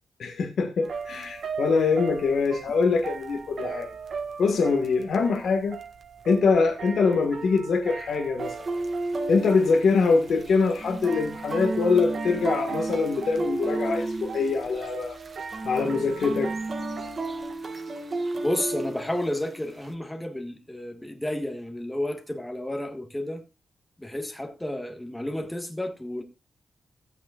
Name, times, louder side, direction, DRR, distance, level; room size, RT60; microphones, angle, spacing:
voice 1, 0.2-3.9 4.4-5.8 6.2-8.5 9.3-15.2 15.6-16.5, left 4 dB, 75° left, 1.6 m, -23 dB
sound 1, 0.8-17.5, right 5 dB, 65° right, 1.6 m, -39 dB
sound 2, 8.4-19.9, right 2 dB, 40° right, 1.8 m, -33 dB
voice 2, 18.4-23.4 24.0-26.2, left 1 dB, 10° left, 1.6 m, -31 dB
15.5 x 8.5 x 2.4 m
wide cardioid pair, 110°, 0 cm